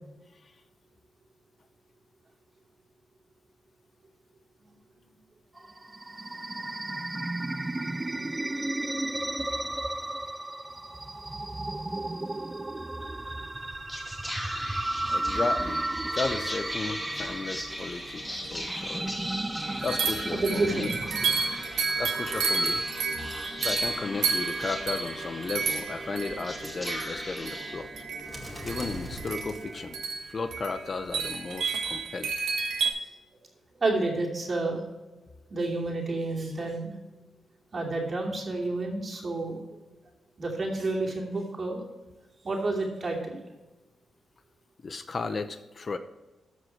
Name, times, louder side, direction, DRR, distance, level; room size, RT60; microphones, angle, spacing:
sound 1, 5.6-22.8, right 2 dB, 15° right, 0.4 m, -34 dB
Whispering, 13.6-30.2, equal, 10° left, 2.4 m, -39 dB
voice 1, 15.1-19.2 19.8-20.9 22.0-22.8 23.1-28.0 28.6-32.3 44.8-46.0, left 4 dB, 40° left, 10 dB, 0.7 m, -34 dB
sound 2, 18.1-18.2 18.4-18.5 19.8-32.9, right 5 dB, 85° right, 1.4 m, -31 dB
voice 2, 20.3-20.9 33.8-34.8 35.5-36.9 37.7-39.6 40.4-41.8 42.4-43.4, right 2 dB, 40° right, 0 dB, 2.7 m, -29 dB
14.0 x 4.9 x 4.6 m, 1.1 s
cardioid pair, 80°, 0 cm